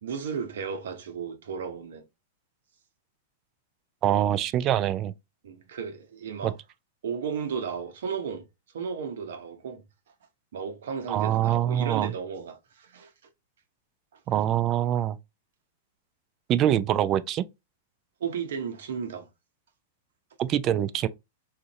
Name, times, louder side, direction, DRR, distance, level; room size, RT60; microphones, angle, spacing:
voice 1, 0.0-2.0 5.4-6.6 7.0-8.4 8.7-9.8 10.5-13.1 18.2-19.3, right 6 dB, 75° right, 0.8 m, -34 dB
voice 2, 4.0-5.1 6.4-6.5 11.1-12.1 14.3-15.2 16.5-17.5 20.4-21.1, right 11 dB, 35° right, 0.3 m, -24 dB
2.6 x 2.5 x 4.0 m
hypercardioid pair, 125°, 0 cm